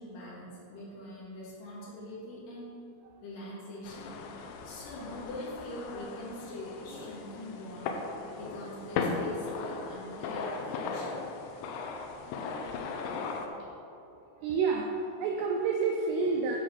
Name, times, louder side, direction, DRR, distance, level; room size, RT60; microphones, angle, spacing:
voice 1, 0.0-2.7 3.2-4.2 4.6-8.0 8.3-11.2, left 1 dB, 50° left, -7 dB, 3.4 m, -43 dB
sound 1, 3.8-13.5, left 4 dB, 80° left, 2.6 m, -37 dB
voice 2, 14.4-16.6, right 4 dB, 85° right, 1 dB, 2.4 m, -29 dB
10.5 x 4.7 x 5.8 m, 2.8 s
omnidirectional pair, 5.5 m